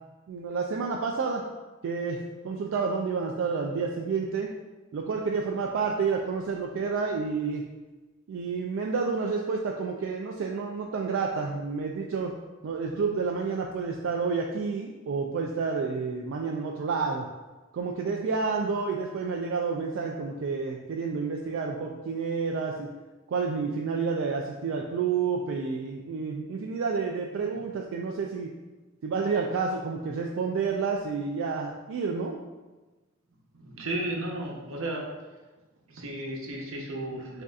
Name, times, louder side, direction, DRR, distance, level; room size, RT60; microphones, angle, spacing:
voice 1, 0.3-1.4 1.8-4.5 4.9-7.6 8.3-12.3 12.6-17.3 17.7-22.9 23.3-28.5 29.0-32.4, right 5 dB, 70° right, 0 dB, 0.3 m, -29 dB
voice 2, 33.6-35.1 35.9-37.4, right 1 dB, 90° right, 0 dB, 0.8 m, -34 dB
6.3 x 2.7 x 2.4 m, 1.2 s
head